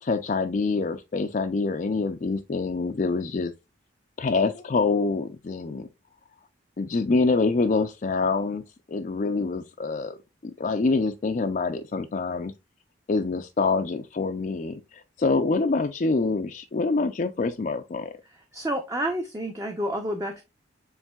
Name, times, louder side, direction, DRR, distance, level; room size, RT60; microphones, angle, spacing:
voice 1, 0.0-3.5 4.2-5.9 6.8-8.6 8.9-10.1 10.4-12.5 13.1-18.1, left 3 dB, 40° left, 0.4 m, -26 dB
voice 2, 18.5-20.4, right 1 dB, 15° right, 0.6 m, -29 dB
7.2 x 3.2 x 2.2 m
head